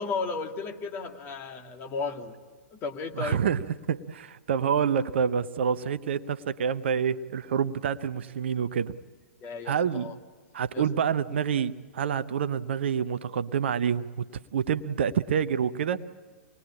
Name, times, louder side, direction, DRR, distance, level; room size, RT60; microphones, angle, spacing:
voice 1, 0.0-2.3 2.8-3.4 9.4-10.1 10.7-10.9, left 4 dB, 25° left, 4 dB, 2.1 m, -34 dB
voice 2, 3.1-8.9 9.6-10.1 10.5-14.2 14.5-16.0, right 7 dB, 55° right, 13 dB, 0.8 m, -27 dB
26.5 x 20.5 x 8.6 m, 1.5 s
figure-of-eight pair, 110°, 7 cm